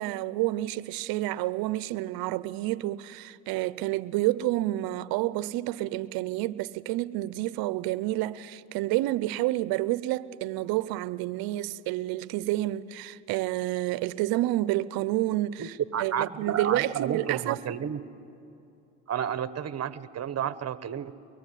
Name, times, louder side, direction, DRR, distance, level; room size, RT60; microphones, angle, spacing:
voice 1, 0.0-15.7 16.0-17.6, right 16 dB, 80° right, 0.7 m, -29 dB
voice 2, 15.6-18.0 19.1-21.1, right 8 dB, 45° right, 1.1 m, -31 dB
23.0 x 22.0 x 10.0 m
supercardioid pair, 75°, 35 cm